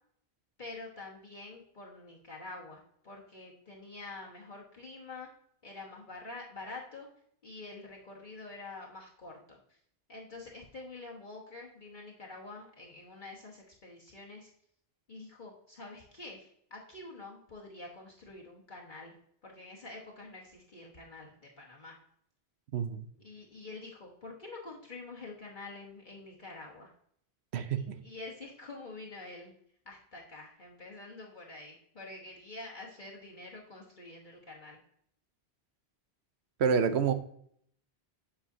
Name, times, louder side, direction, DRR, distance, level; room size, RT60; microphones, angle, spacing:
voice 1, 0.6-5.3 5.6-7.1 7.4-9.8 10.1-14.5 15.1-19.2 19.4-22.0 23.2-26.9 28.0-29.5 29.8-34.8, left 3 dB, 50° left, 1.3 m, -47 dB
voice 2, 22.7-23.1 27.5-28.0 36.6-37.1, right 6 dB, 80° right, 1.0 m, -28 dB
8.3 x 5.6 x 2.7 m
omnidirectional pair, 1.1 m